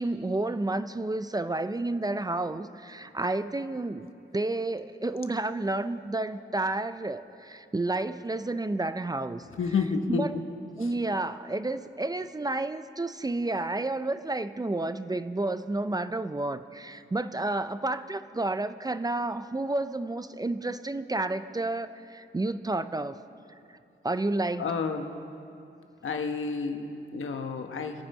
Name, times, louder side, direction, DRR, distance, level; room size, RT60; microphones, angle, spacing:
voice 1, 0.0-9.5 10.1-10.3 10.8-23.2 24.0-24.7, right 2 dB, 20° right, 11 dB, 0.5 m, -30 dB
voice 2, 9.6-10.4 10.8-10.9 24.6-25.1 26.0-28.0, left 5 dB, 85° left, 5 dB, 1.2 m, -30 dB
25.0 x 9.1 x 5.4 m, 2.6 s
wide cardioid pair, 110°, 20 cm